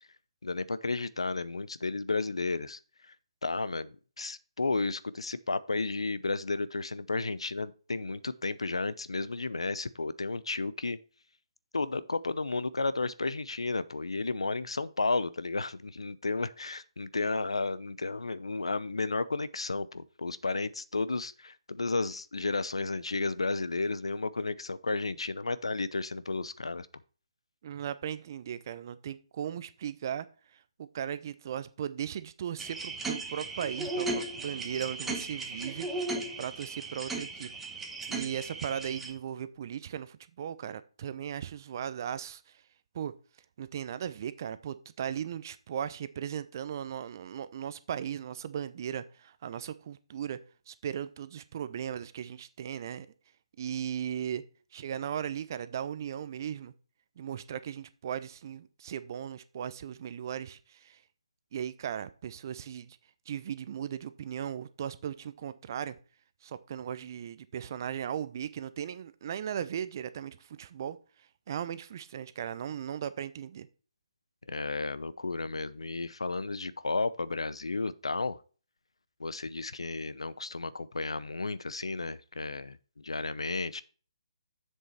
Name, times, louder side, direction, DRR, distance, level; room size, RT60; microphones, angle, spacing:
voice 1, 0.4-3.1 3.4-11.0 11.7-26.9 74.5-78.4 79.2-83.8, left 3 dB, 80° left, 0.7 m, -33 dB
voice 2, 27.6-30.3 30.8-37.5 38.1-42.4 42.9-43.1 43.6-50.4 50.7-53.1 53.6-54.4 54.7-56.7 57.2-61.0 61.5-63.0 63.3-66.0 66.4-71.0 71.5-73.7, right 9 dB, 40° right, 0.7 m, -37 dB
sound 1, 32.6-39.1, right 2 dB, 5° right, 1.2 m, -36 dB
7.6 x 6.5 x 4.3 m
figure-of-eight pair, 145°, 3 cm